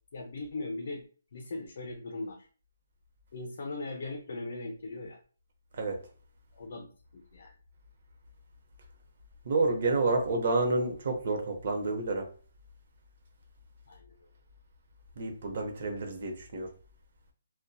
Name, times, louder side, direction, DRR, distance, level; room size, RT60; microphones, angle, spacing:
voice 1, 0.1-1.0 1.3-2.5 3.3-5.2 6.5-6.9 7.1-7.5 13.9-14.1, left 2 dB, 60° left, 0.5 m, -39 dB
voice 2, 9.4-12.3 15.2-16.7, right 3 dB, 55° right, 0.7 m, -29 dB
2.7 x 2.1 x 2.2 m
hypercardioid pair, 155°, 0 cm